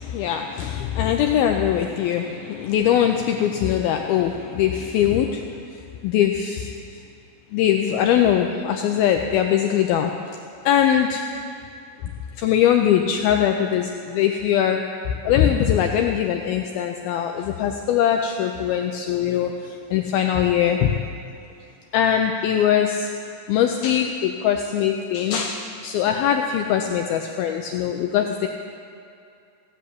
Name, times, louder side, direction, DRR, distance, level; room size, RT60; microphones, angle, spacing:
voice 1, 0.0-7.0 7.5-10.1 10.7-11.2 12.0-12.1 12.4-14.8 15.2-21.0 21.9-23.1 23.5-28.5, left 9 dB, 85° left, 4 dB, 2.1 m, -21 dB
15.5 x 10.0 x 8.4 m, 2.5 s
omnidirectional pair, 5.1 m